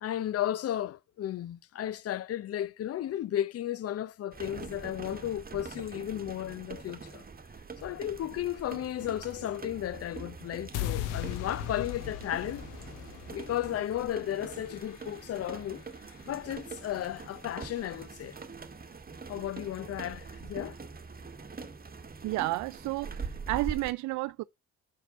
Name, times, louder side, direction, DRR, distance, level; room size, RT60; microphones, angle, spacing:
voice 1, 0.0-7.2 7.8-12.7 13.3-15.8 16.3-18.4 19.3-20.8, left 12 dB, 45° left, 0.7 m, -34 dB
sound 1, 4.3-23.9, right 4 dB, 30° right, 1.6 m, -44 dB
sound 2, 10.7-16.9, left 12 dB, 70° left, 1.1 m, -40 dB
voice 2, 22.2-24.4, right 20 dB, 60° right, 0.5 m, -31 dB
7.2 x 6.5 x 4.1 m
hypercardioid pair, 50°, 32 cm